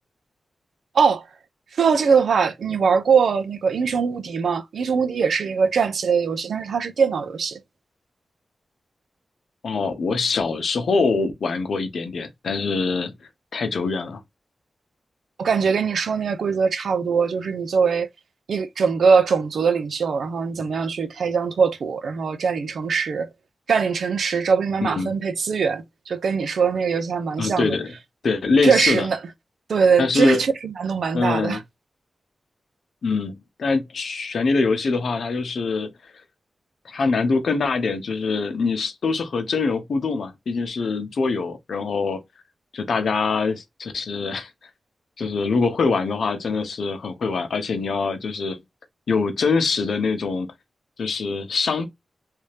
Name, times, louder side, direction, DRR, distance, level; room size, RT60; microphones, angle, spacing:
voice 1, 1.8-7.6 15.4-18.1 18.5-23.3 23.7-27.8 28.6-29.2 29.7-31.6, right 5 dB, 85° right, 0.6 m, -21 dB
voice 2, 9.6-13.1 13.5-14.2 24.8-25.1 27.4-27.9 28.2-29.1 30.0-30.4 31.1-31.6 33.0-35.9 36.8-42.2 42.7-44.5 45.2-48.6 49.1-50.5 51.0-51.9, left 4 dB, 70° left, 0.8 m, -24 dB
3.3 x 2.8 x 3.3 m
wide cardioid pair, 175°, 0 cm